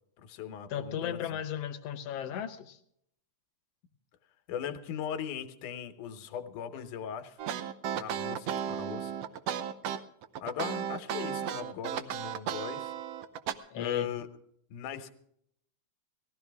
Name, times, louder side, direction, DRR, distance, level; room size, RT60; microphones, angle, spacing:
voice 1, 0.2-1.2 4.5-7.4 7.9-9.1 10.4-12.9 13.8-14.3 14.7-15.1, left 8 dB, 85° left, 9 dB, 2.6 m, -39 dB
voice 2, 0.7-2.8 8.3-8.4 13.7-14.1, left 9 dB, 65° left, 10 dB, 1.8 m, -36 dB
sound 1, 7.4-13.5, right 8 dB, 70° right, 1.7 m, -34 dB
19.0 x 15.0 x 3.5 m, 0.70 s
omnidirectional pair, 3.5 m